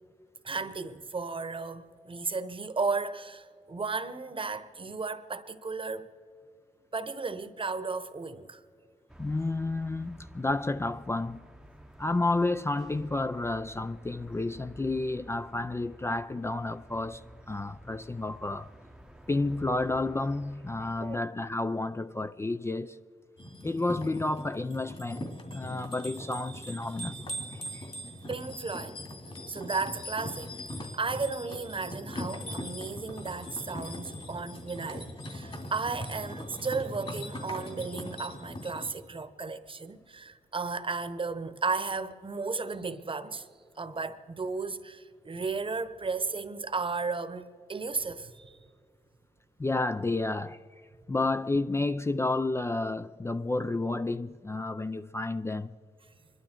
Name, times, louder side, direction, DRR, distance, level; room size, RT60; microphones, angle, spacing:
voice 1, 0.4-6.1 6.9-8.6 21.0-21.2 28.3-29.0 29.5-43.5 43.8-48.6, right 4 dB, 40° right, 1.0 m, -34 dB
sound 1, 9.1-21.2, right 1 dB, 5° right, 0.8 m, -52 dB
voice 2, 9.2-11.4 12.0-18.7 19.3-23.0 23.6-27.1 27.5-27.8 49.6-50.6 51.1-55.7, left 2 dB, 20° left, 0.4 m, -31 dB
Santorini donkey bells, 23.4-38.9, equal, 40° left, 2.6 m, -40 dB
25.0 x 12.0 x 4.5 m
cardioid pair, 80°, 14 cm